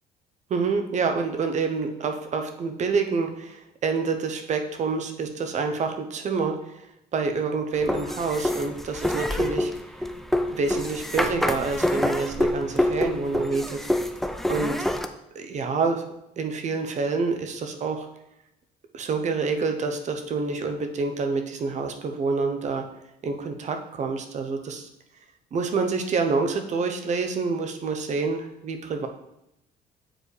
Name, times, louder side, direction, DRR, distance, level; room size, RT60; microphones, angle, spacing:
voice 1, 0.5-6.9 7.1-9.7 10.5-13.8 14.5-14.7 15.3-16.0 16.4-18.1 18.9-22.8 23.2-24.9 25.5-29.1, right 4 dB, 45° right, 5 dB, 0.8 m, -27 dB
sound 1, 7.8-15.1, left 1 dB, ahead, 0.4 m, -26 dB
7.5 x 4.4 x 3.3 m, 0.84 s
cardioid pair, 110°, 17 cm